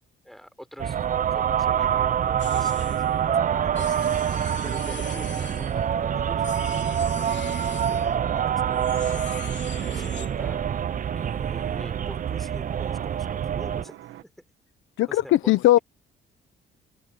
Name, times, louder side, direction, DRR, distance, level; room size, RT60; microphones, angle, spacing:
voice 1, 0.2-1.0 1.3-4.0 4.6-6.5 6.9-7.4 7.8-9.3 9.8-10.6 11.1-14.3 15.1-15.5, equal, ahead, 3.9 m, -45 dB
sound 1, 0.8-13.8, right 9 dB, 40° right, 0.6 m, -26 dB
sound 2, 2.4-3.1 3.8-5.9 6.4-8.1 8.7-10.3, left 10 dB, 65° left, 3.2 m, -42 dB
sound 3, 2.4-14.2, right 13 dB, 80° right, 1.4 m, -44 dB
voice 2, 15.0-15.8, left 15 dB, 85° left, 0.9 m, -19 dB
open air
cardioid pair, 90°, 20 cm